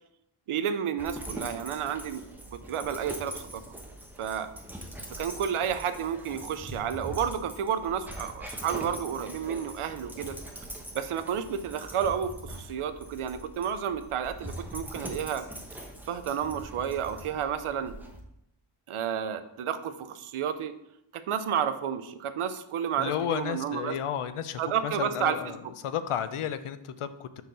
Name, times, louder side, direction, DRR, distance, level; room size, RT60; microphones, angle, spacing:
voice 1, 0.5-2.2 2.5-3.6 4.2-4.5 5.2-10.4 10.9-15.5 16.1-17.9 18.9-20.7 21.1-24.0 24.6-25.6, right 8 dB, 90° right, 11 dB, 0.7 m, -31 dB
Dog, 1.0-18.2, right 1 dB, 5° right, 1.0 m, -42 dB
voice 2, 23.0-27.4, left 9 dB, 85° left, 12 dB, 0.6 m, -32 dB
5.1 x 4.6 x 6.2 m, 0.82 s
wide cardioid pair, 110°, 49 cm